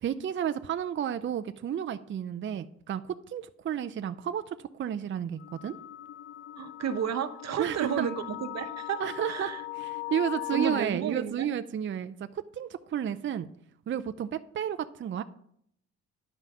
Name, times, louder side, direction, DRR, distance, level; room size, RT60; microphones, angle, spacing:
voice 1, 0.0-5.8 7.6-8.1 9.0-9.5 9.8-13.5 13.9-15.2, right 9 dB, 40° right, 11 dB, 0.5 m, -32 dB
sound 1, 5.4-10.8, left 16 dB, 45° left, 0.4 m, -39 dB
voice 2, 6.6-9.6 10.5-11.5, right 8 dB, 60° right, 10 dB, 1.0 m, -32 dB
10.5 x 5.6 x 6.2 m, 0.68 s
cardioid pair, 90°, 30 cm